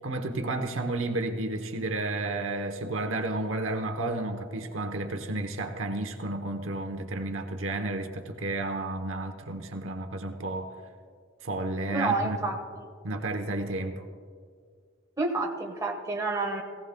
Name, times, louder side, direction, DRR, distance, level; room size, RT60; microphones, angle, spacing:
voice 1, 0.0-10.7 11.4-12.4 13.0-14.0, right 2 dB, 80° right, 6 dB, 0.9 m, -32 dB
voice 2, 11.9-12.9 15.2-16.6, right 3 dB, 15° right, 0 dB, 1.3 m, -29 dB
18.5 x 16.0 x 2.2 m, 2.1 s
head